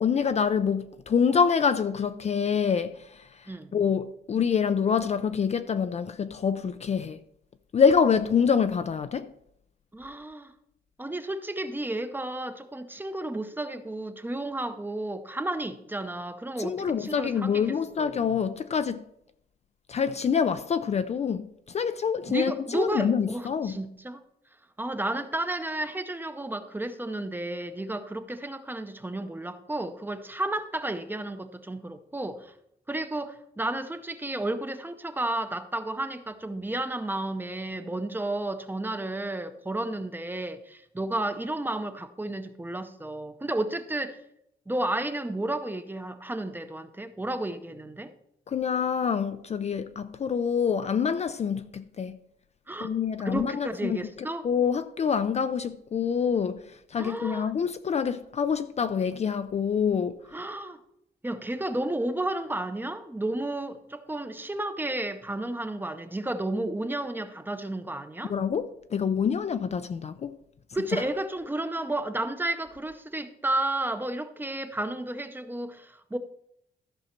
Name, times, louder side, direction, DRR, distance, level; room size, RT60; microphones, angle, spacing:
voice 1, 0.0-7.2 7.7-9.3 16.6-19.0 19.9-23.8 48.5-52.2 52.8-54.0 54.4-60.3 68.3-70.3 70.9-71.1, left 6 dB, 40° left, 0.4 m, -26 dB
voice 2, 9.9-10.5 11.0-18.1 22.3-24.2 24.8-32.5 32.9-44.2 44.7-48.1 52.7-52.9 53.2-54.5 57.0-57.5 60.3-60.8 61.2-68.3 70.7-76.2, right 1 dB, 10° right, 0.6 m, -32 dB
13.5 x 6.2 x 4.4 m
wide cardioid pair, 165°, 18 cm